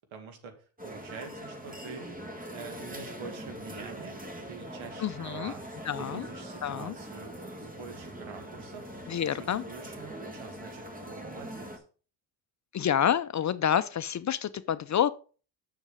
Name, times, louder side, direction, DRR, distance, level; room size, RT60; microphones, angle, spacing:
voice 1, 0.1-2.1 2.5-4.2 4.5-5.7 6.0-8.9 9.3-11.8, right 5 dB, 75° right, 2.3 m, -45 dB
sound 1, 0.8-11.8, right 1 dB, 15° right, 1.9 m, -42 dB
voice 2, 5.0-5.5 5.9-6.3 6.6-6.9 9.1-9.6 12.7-15.1, left 9 dB, 40° left, 0.5 m, -28 dB
7.1 x 6.7 x 5.1 m
cardioid pair, 90°, 47 cm